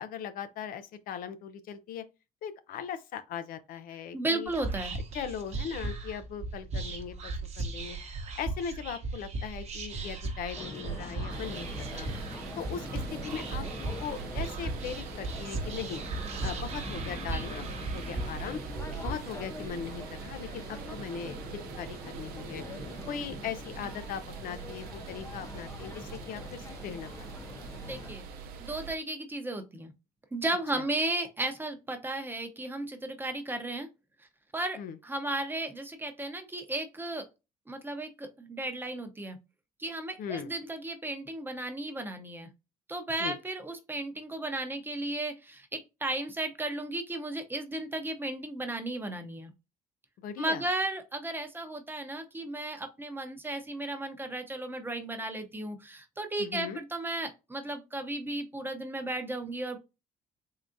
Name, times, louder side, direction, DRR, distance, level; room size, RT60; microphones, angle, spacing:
voice 1, 0.0-2.0 2.4-4.5 5.1-8.0 8.3-12.1 12.6-13.6 14.0-16.0 16.4-18.6 19.0-22.6 23.1-27.5 30.7-30.8 34.8-35.0 40.2-40.5 43.2-43.4 50.2-50.6 56.4-56.8, left 7 dB, 70° left, 0.5 m, -39 dB
voice 2, 4.1-4.9 17.3-17.5 27.8-28.2 28.6-29.9 30.3-33.9 34.5-37.2 37.7-39.4 39.8-42.5 42.9-49.5 50.4-59.8, right 2 dB, 15° right, 0.7 m, -34 dB
Whispering, 4.5-19.1, right 3 dB, 45° right, 0.9 m, -37 dB
sound 1, 10.5-28.1, left 3 dB, 20° left, 0.4 m, -44 dB
sound 2, 11.3-29.0, right 5 dB, 85° right, 0.6 m, -43 dB
3.7 x 3.4 x 2.6 m
cardioid pair, 100°, 15 cm